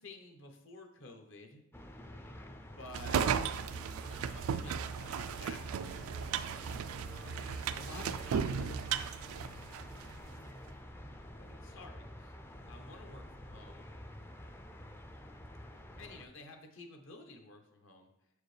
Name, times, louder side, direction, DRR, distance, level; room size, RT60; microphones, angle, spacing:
voice 1, 0.0-1.6 2.8-3.3 4.1-6.3 7.7-8.8 11.4-12.3 12.7-13.9 16.0-18.1, left 2 dB, 65° left, 4 dB, 0.9 m, -51 dB
sound 1, 1.7-16.3, left 1 dB, 10° left, 0.4 m, -49 dB
sound 2, 2.9-10.1, right 7 dB, 85° right, 0.3 m, -35 dB
6.9 x 4.8 x 3.2 m, 0.82 s
head